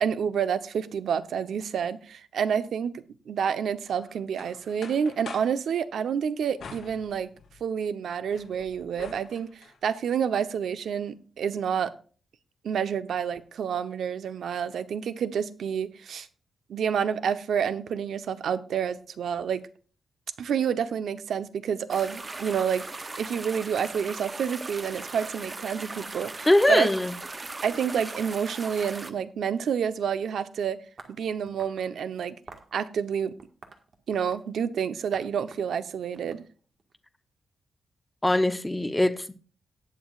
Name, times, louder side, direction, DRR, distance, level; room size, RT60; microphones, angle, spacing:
voice 1, 0.0-7.3 7.6-9.5 9.8-11.9 12.6-16.3 16.7-19.6 20.4-26.9 27.6-30.8 31.1-32.4 32.7-33.3 34.1-36.4, right 7 dB, 70° right, 0.9 m, -29 dB
sound 1, 3.9-5.6 6.6-7.6 8.1-9.8, left 5 dB, 60° left, 3.6 m, -46 dB
sound 2, 21.9-29.1, right 3 dB, 20° right, 0.7 m, -39 dB
voice 2, 26.5-27.1 38.2-39.3, left 1 dB, 10° left, 0.7 m, -22 dB
sound 3, 31.0-31.9 32.5-32.7 33.4-34.5 35.1-35.2 35.5-36.9, right 4 dB, 45° right, 1.6 m, -49 dB
18.5 x 6.8 x 2.5 m
wide cardioid pair, 160°, 0 cm